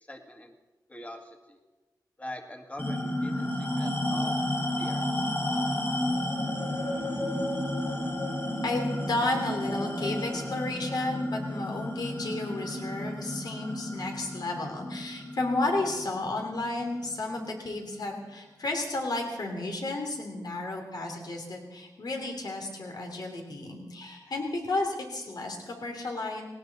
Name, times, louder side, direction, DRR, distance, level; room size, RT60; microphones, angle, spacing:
voice 1, 0.1-0.5 0.9-1.6 2.2-4.4 4.8-5.1, equal, 20° left, 3 dB, 2.0 m, -43 dB
sound 1, 2.8-17.6, left 1 dB, 35° left, 4.5 m, -32 dB
voice 2, 8.6-26.4, left 2 dB, 70° left, 2 dB, 2.9 m, -32 dB
19.0 x 17.5 x 4.0 m, 1.2 s
cardioid pair, 60°, 7 cm